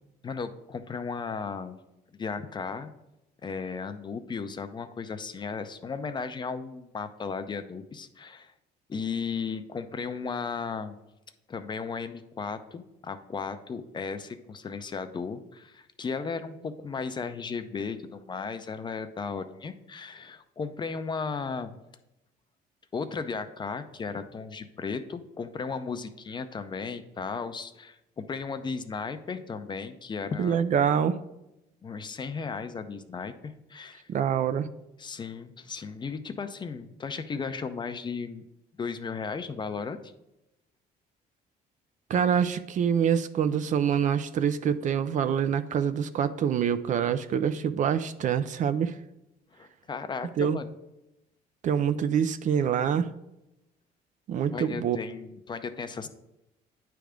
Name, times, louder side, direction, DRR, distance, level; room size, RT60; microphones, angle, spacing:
voice 1, 0.2-1.8 2.2-2.9 3.4-8.5 8.9-11.0 11.5-21.8 22.9-30.6 31.8-34.1 35.0-38.4 38.8-40.1 49.5-50.7 54.5-56.1, left 5 dB, 25° left, 10 dB, 0.5 m, -35 dB
voice 2, 30.4-31.2 34.1-34.7 42.1-48.9 50.4-50.6 51.6-53.1 54.3-55.0, right 8 dB, 50° right, 12 dB, 0.4 m, -25 dB
9.1 x 3.4 x 5.0 m, 0.91 s
cardioid pair, 110°, 17 cm